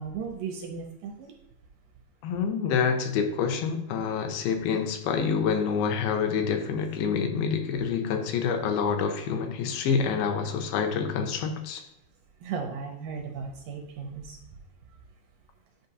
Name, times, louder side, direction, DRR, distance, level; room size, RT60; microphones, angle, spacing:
voice 1, 0.0-1.3 12.4-14.4, right 5 dB, 80° right, 3 dB, 2.0 m, -36 dB
voice 2, 2.2-11.9, left 6 dB, 90° left, 5 dB, 2.5 m, -27 dB
9.1 x 5.2 x 2.8 m, 0.82 s
omnidirectional pair, 4.3 m